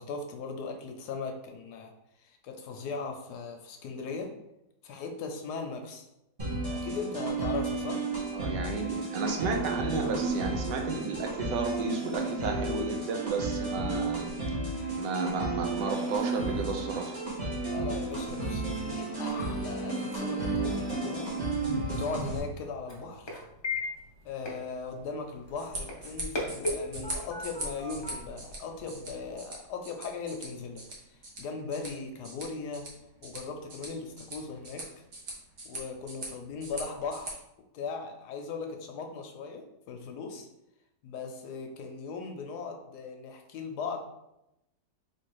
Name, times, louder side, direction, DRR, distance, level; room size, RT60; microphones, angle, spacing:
voice 1, 0.0-4.3 4.8-6.1 6.7-8.1 9.8-10.0 13.9-14.2 17.6-21.3 21.9-23.4 24.2-32.9 33.2-34.9 35.6-37.4 37.7-40.5 41.0-44.0, left 4 dB, 75° left, 4 dB, 1.1 m, -38 dB
sound 1, 6.4-22.4, right 3 dB, 20° right, 1.2 m, -32 dB
voice 2, 8.3-14.2 15.0-17.2, right 4 dB, 75° right, 3 dB, 1.3 m, -33 dB
sound 2, 21.4-29.3, left 2 dB, 35° left, 0.4 m, -39 dB
sound 3, 25.4-37.3, right 2 dB, 45° right, 1.1 m, -42 dB
3.3 x 2.9 x 4.6 m, 0.87 s
omnidirectional pair, 1.9 m